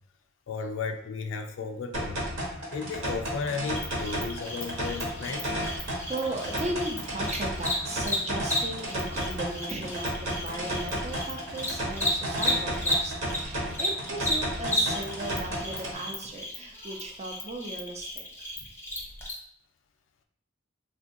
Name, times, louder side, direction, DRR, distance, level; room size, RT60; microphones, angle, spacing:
voice 1, 0.5-2.2 2.7-5.4, left 5 dB, 75° left, 5 dB, 0.4 m, -34 dB
sound 1, 1.9-15.9, equal, 70° right, 0.8 m, -33 dB
Cricket, 3.7-13.4 13.7-19.3, left 1 dB, 10° left, 0.6 m, -33 dB
voice 2, 5.8-18.2, right 2 dB, 35° right, 2 dB, 0.4 m, -37 dB
3.6 x 2.4 x 2.5 m, 0.65 s
head